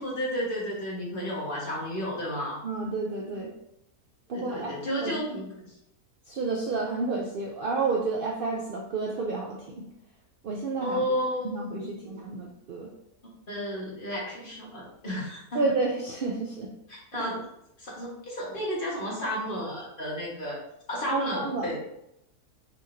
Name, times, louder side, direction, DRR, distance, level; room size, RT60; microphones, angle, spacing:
voice 1, 0.0-2.6 4.3-5.7 10.8-12.2 13.5-15.6 16.9-17.4 17.8-20.6 20.9-21.8, equal, 35° left, -5 dB, 1.6 m, -32 dB
voice 2, 2.6-3.5 4.3-5.2 6.3-9.9 10.4-11.0 11.4-12.9 15.5-16.7 21.1-21.8, right 3 dB, 80° right, -1 dB, 0.4 m, -30 dB
5.4 x 3.6 x 2.6 m, 0.80 s
omnidirectional pair, 1.6 m